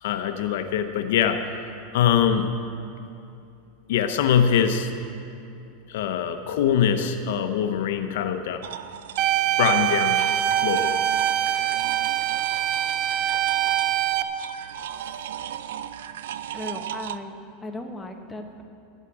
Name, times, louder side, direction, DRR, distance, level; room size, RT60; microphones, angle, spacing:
voice 1, 0.0-1.5 1.9-2.5 3.9-4.9 5.9-8.6 9.6-10.3 10.6-11.0 11.5-11.6 13.3-13.4, left 8 dB, 75° left, 8 dB, 0.9 m, -23 dB
sound 1, 8.6-17.2, right 11 dB, 85° right, 0.5 m, -36 dB
sound 2, 9.2-14.2, right 12 dB, 50° right, 0.7 m, -23 dB
voice 2, 16.5-18.6, left 1 dB, 10° left, 3 dB, 1.1 m, -37 dB
12.5 x 8.2 x 8.6 m, 2.7 s
supercardioid pair, 145°, 0 cm